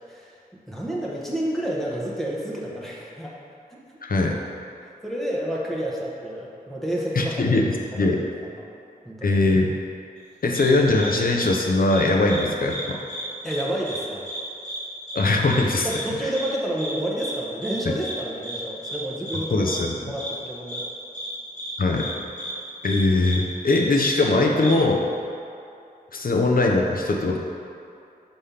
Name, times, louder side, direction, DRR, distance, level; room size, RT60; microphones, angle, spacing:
voice 1, 0.7-3.3 3.7-3.8 4.8-7.5 8.0-8.2 8.5-8.7 9.0-9.4 13.4-14.3 15.8-20.8, right 1 dB, ahead, -5 dB, 1.0 m, -30 dB
voice 2, 4.0-4.4 7.1-8.2 9.2-9.7 10.4-13.0 15.1-15.9 17.9-18.0 19.5-19.9 21.8-22.1 22.8-25.1 26.1-27.4, left 2 dB, 60° left, 0 dB, 0.7 m, -21 dB
sound 1, 10.5-10.7 11.0-11.1 11.4-11.5 11.9-12.4 12.7-12.8 13.1-13.6 13.9-14.0 14.3-14.4 14.6-14.8 15.1-15.2 15.5-15.6 15.9-16.0 16.3-16.5 16.8-16.9 17.2-17.3 17.6-17.7 18.0-18.1 18.4-18.6 18.8-19.0 19.3-19.4 19.7-19.8 20.2-20.3 20.7-20.8 21.1-21.3 21.6-21.7 22.0-22.1 22.4-22.5 22.8-23.0 23.2-23.4 23.6-23.8 24.1-24.2 24.6-24.7, equal, 45° left, 1.4 m, -33 dB
5.3 x 3.4 x 5.7 m, 2.6 s
wide cardioid pair, 70°, 16 cm